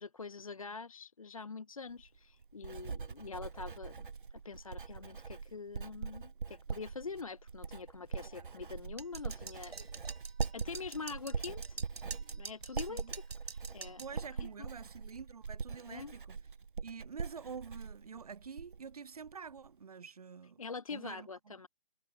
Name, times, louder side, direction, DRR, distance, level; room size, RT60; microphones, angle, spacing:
voice 1, 0.0-9.9 10.5-12.1 12.4-14.3 14.6-14.7 15.9-16.1 20.6-21.7, left 4 dB, 35° left, 0.9 m, -45 dB
Writing, 1.9-18.9 19.2-19.7, right 5 dB, 50° right, 4.4 m, -42 dB
sound 1, 9.0-14.1, right 4 dB, 70° right, 6.0 m, -46 dB
voice 2, 12.7-13.1 13.8-16.4 16.8-20.6 20.9-21.5, right 6 dB, 35° right, 2.2 m, -48 dB
hypercardioid pair, 175°, 31 cm